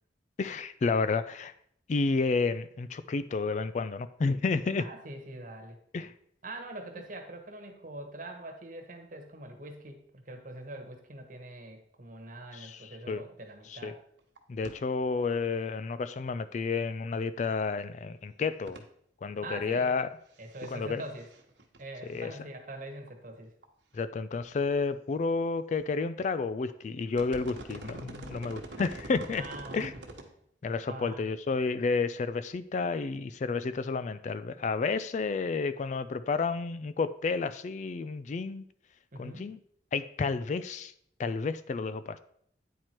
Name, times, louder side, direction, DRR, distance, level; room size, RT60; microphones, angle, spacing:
voice 1, 0.4-1.5 1.9-4.9 5.9-6.1 12.5-13.2 13.7-14.0 14.5-18.8 19.2-20.1 20.7-21.0 22.1-22.3 23.9-29.4 29.7-29.9 30.6-38.6 39.2-39.6 39.9-40.9 41.2-42.2, left 4 dB, 40° left, 14 dB, 0.3 m, -31 dB
voice 2, 4.8-5.8 6.4-14.0 19.4-19.9 20.4-21.3 21.8-23.5 29.2-29.9 30.8-31.3 39.1-39.4, right 1 dB, 50° right, 4 dB, 1.3 m, -43 dB
sound 1, 13.8-13.9 14.2-14.4 14.6-14.7 15.0-15.1 17.4-17.5 18.7-18.8 20.4-20.8 21.0-21.8 22.2-22.3 23.1-23.2 23.6-23.7 24.0-24.1 24.4-24.8 25.8-26.0 26.5-26.7 27.0-30.3 30.6-30.7, right 1 dB, 85° right, 1.2 m, -44 dB
9.0 x 4.6 x 4.4 m, 0.67 s
head